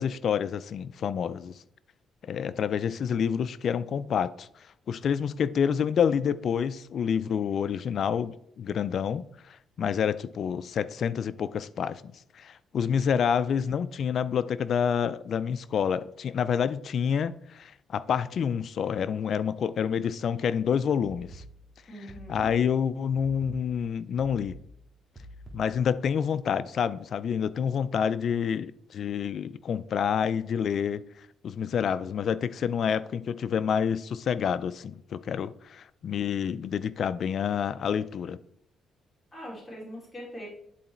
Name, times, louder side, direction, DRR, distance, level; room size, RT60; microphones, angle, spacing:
voice 1, 0.0-1.6 2.3-4.5 4.9-12.0 12.3-21.4 22.3-24.6 25.5-31.0 31.4-38.4, left 7 dB, 60° left, 0.3 m, -28 dB
sound 1, 21.0-26.0, right 1 dB, 20° right, 1.7 m, -48 dB
voice 2, 21.9-22.5 39.3-40.5, equal, 20° left, 3.2 m, -42 dB
10.0 x 3.9 x 4.3 m
cardioid pair, 90°, 0 cm